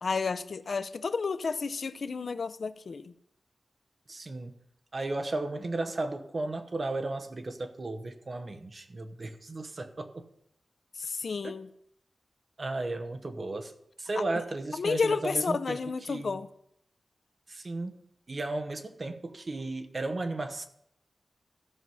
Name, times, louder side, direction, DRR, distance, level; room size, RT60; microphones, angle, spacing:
voice 1, 0.0-3.1 11.0-11.7 14.8-16.5, left 4 dB, 60° left, 0.5 m, -31 dB
voice 2, 4.1-4.6 4.9-10.3 11.4-11.5 12.6-15.8 16.1-16.4 17.5-18.0 18.3-20.7, right 2 dB, 40° right, 1.0 m, -35 dB
14.5 x 6.1 x 5.6 m
wide cardioid pair, 130°, 0 cm